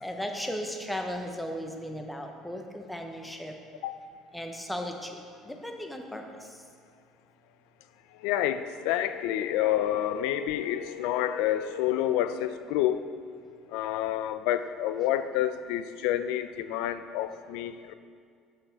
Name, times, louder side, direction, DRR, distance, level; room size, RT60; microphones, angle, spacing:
voice 1, 0.0-3.5 4.3-5.2 5.5-6.2, equal, 5° left, 3 dB, 0.8 m, -36 dB
voice 2, 8.2-13.1 13.7-17.9, left 11 dB, 80° left, 12 dB, 0.3 m, -28 dB
6.3 x 6.3 x 4.5 m, 2.2 s
supercardioid pair, 100°, 0 cm